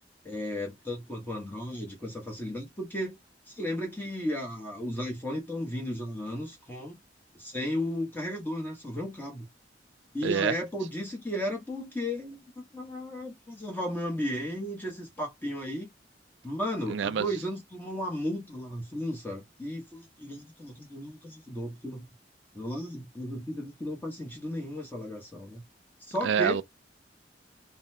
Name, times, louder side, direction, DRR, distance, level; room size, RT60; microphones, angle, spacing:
voice 1, 0.2-3.2 3.5-7.0 7.3-9.4 10.1-15.9 16.4-22.1 22.5-25.6 26.0-26.6, equal, 10° left, 1.0 m, -34 dB
voice 2, 10.2-10.5 16.9-17.3 26.2-26.6, right 7 dB, 90° right, 0.4 m, -26 dB
3.9 x 2.1 x 2.6 m
head